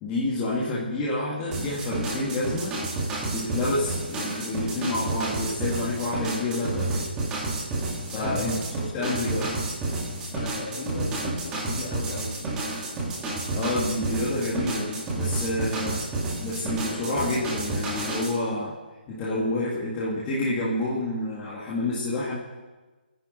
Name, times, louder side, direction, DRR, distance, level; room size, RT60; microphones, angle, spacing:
voice 1, 0.0-2.8 3.2-7.1 8.1-8.6 8.9-9.6 13.5-16.0 16.4-18.7 19.1-22.4, left 2 dB, 15° left, -7 dB, 1.8 m, -28 dB
sound 1, 1.5-18.3, right 2 dB, 10° right, 1.9 m, -30 dB
voice 2, 8.1-8.7 10.3-12.5, left 2 dB, 35° left, -1 dB, 2.8 m, -36 dB
25.0 x 10.0 x 4.3 m, 1.2 s
hypercardioid pair, 170°, 6 cm